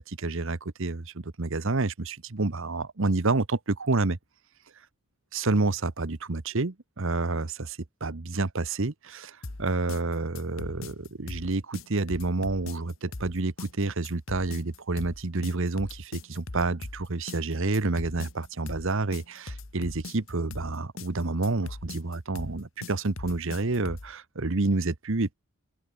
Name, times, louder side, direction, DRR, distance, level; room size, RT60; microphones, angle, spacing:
voice 1, 0.0-4.2 5.3-25.3, right 3 dB, 60° right, 1.1 m, -29 dB
sound 1, 9.4-24.1, left 2 dB, 60° left, 1.5 m, -40 dB
head